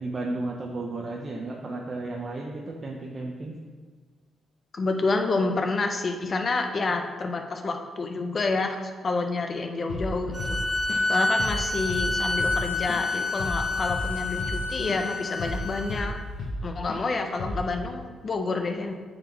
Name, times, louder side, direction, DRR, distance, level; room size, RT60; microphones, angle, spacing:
voice 1, 0.0-3.6 11.4-11.5, right 2 dB, 35° right, 0 dB, 0.6 m, -33 dB
voice 2, 4.7-10.6 11.1-16.1 16.6-18.9, left 3 dB, 40° left, 5 dB, 0.6 m, -28 dB
Drum kit / Drum, 9.9-10.1 10.4-11.1 11.4-11.6 11.9-15.1 15.4-16.6 16.9-17.1 17.4-17.7, left 1 dB, 65° left, 0.9 m, -33 dB
sound 1, 10.3-16.0, left 2 dB, 5° left, 1.0 m, -28 dB
9.1 x 4.0 x 3.0 m, 1.5 s
cardioid pair, 105°, 0 cm